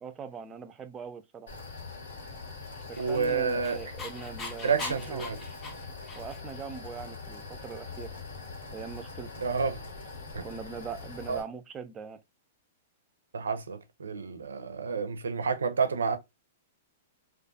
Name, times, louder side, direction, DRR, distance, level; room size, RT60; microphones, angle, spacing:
voice 1, 0.0-1.5 2.9-5.2 6.1-8.1 8.7-9.3 10.4-12.2, right 6 dB, 25° right, 0.4 m, -41 dB
sound 1, 1.5-11.4, left 4 dB, 80° left, 1.4 m, -43 dB
Dog, 2.8-6.6, left 5 dB, 25° left, 0.6 m, -42 dB
voice 2, 3.0-3.8 4.6-5.4 9.4-9.9 10.3-10.4 11.3-11.4 13.3-16.2, right 5 dB, 90° right, 0.4 m, -29 dB
2.4 x 2.3 x 2.6 m
hypercardioid pair, 120°, 0 cm